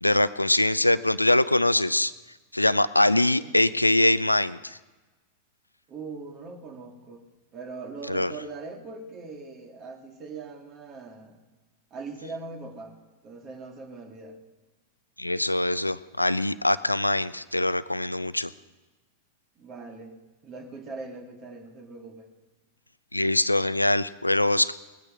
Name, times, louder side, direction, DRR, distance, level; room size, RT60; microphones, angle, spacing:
voice 1, 0.0-2.1 2.5-4.8 8.1-8.3 15.2-18.5 23.1-24.7, left 1 dB, 85° left, 16 dB, 0.4 m, -23 dB
voice 2, 3.0-3.6 5.9-7.2 7.5-11.4 11.9-13.0 13.2-14.4 19.6-20.1 20.4-22.3, right 3 dB, 30° right, 3 dB, 2.2 m, -41 dB
20.0 x 9.1 x 6.2 m, 1.2 s
figure-of-eight pair, 90°, 0 cm